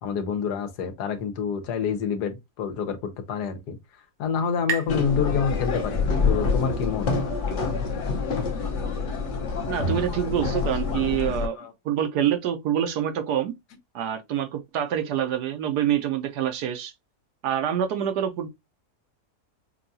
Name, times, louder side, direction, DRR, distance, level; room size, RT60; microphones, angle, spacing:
voice 1, 0.0-3.8 4.2-7.1 10.9-11.1 11.6-11.7, left 6 dB, 80° left, 1.4 m, -27 dB
sound 1, 3.2-6.6, right 6 dB, 60° right, 0.7 m, -38 dB
sound 2, 4.9-11.5, left 4 dB, 50° left, 1.1 m, -26 dB
voice 2, 9.7-11.6 11.8-13.5 13.9-16.9 17.4-18.5, right 10 dB, 80° right, 1.2 m, -26 dB
5.6 x 2.3 x 2.6 m
omnidirectional pair, 1.7 m